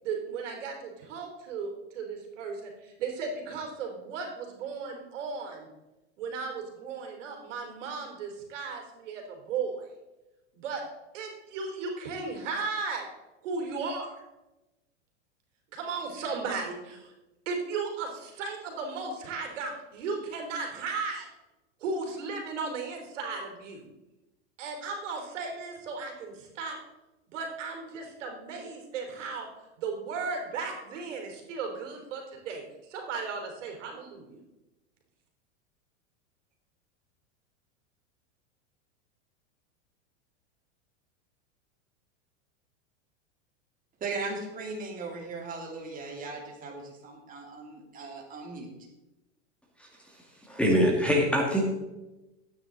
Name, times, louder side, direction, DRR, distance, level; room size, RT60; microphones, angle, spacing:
voice 1, 0.0-5.7 6.2-9.9 10.5-10.8 11.1-13.0 13.4-14.1 15.7-17.1 17.4-21.3 21.8-23.8 24.6-26.8 27.3-29.5 29.8-34.4, right 4 dB, 75° right, 3 dB, 3.3 m, -35 dB
voice 2, 44.0-48.7, right 3 dB, 20° right, -1 dB, 2.5 m, -38 dB
voice 3, 50.5-51.6, equal, 5° left, -1 dB, 1.7 m, -23 dB
12.5 x 9.2 x 3.8 m, 1.0 s
supercardioid pair, 135°, 37 cm